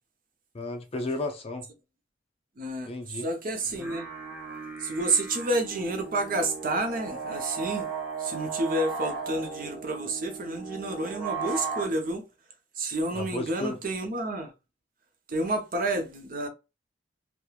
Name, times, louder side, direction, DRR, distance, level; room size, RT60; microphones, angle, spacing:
voice 1, 0.5-1.7 2.9-3.3 13.1-13.8, left 2 dB, 30° left, 0.5 m, -33 dB
voice 2, 2.6-4.1 4.8-7.9 8.2-12.2 12.8-14.5 15.3-16.5, right 2 dB, 50° right, 0.7 m, -30 dB
sound 1, 3.6-11.9, right 5 dB, 5° right, 0.8 m, -36 dB
3.1 x 2.2 x 2.3 m
head